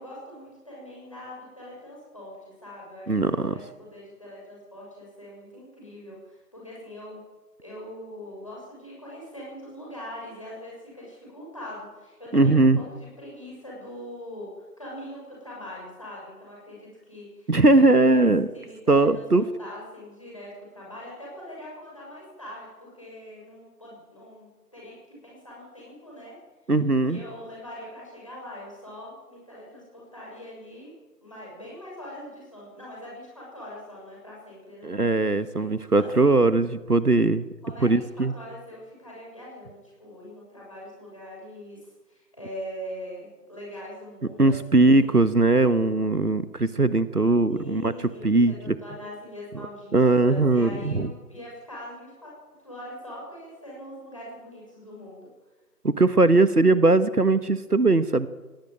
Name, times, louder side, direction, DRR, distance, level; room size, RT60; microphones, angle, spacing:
voice 1, 0.0-3.1 3.5-7.2 7.6-14.5 14.8-18.3 18.5-26.4 27.1-30.9 31.2-34.9 35.6-36.4 37.6-45.2 47.5-52.3 52.6-55.3, equal, 20° left, -4 dB, 6.5 m, -42 dB
voice 2, 3.1-3.5 12.3-12.8 17.5-18.5 18.9-19.4 26.7-27.2 34.8-37.5 37.8-38.3 44.4-47.9 48.2-48.8 49.9-51.1 55.8-58.3, right 2 dB, 65° right, 14 dB, 1.3 m, -20 dB
20.0 x 17.0 x 9.0 m, 1.2 s
figure-of-eight pair, 175°, 48 cm